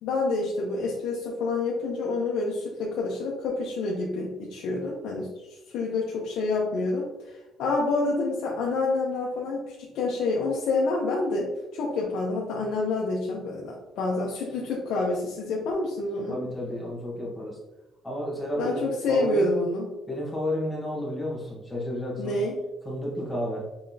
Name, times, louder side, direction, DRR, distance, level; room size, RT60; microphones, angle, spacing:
voice 1, 0.0-16.4 18.6-19.9 22.2-22.6, left 3 dB, 80° left, -3 dB, 0.7 m, -28 dB
voice 2, 16.3-17.6 18.0-18.8 19.1-19.5 20.1-22.4 22.8-23.7, equal, 10° left, -4 dB, 1.3 m, -31 dB
5.6 x 3.3 x 2.8 m, 1.0 s
cardioid pair, 130°, 0 cm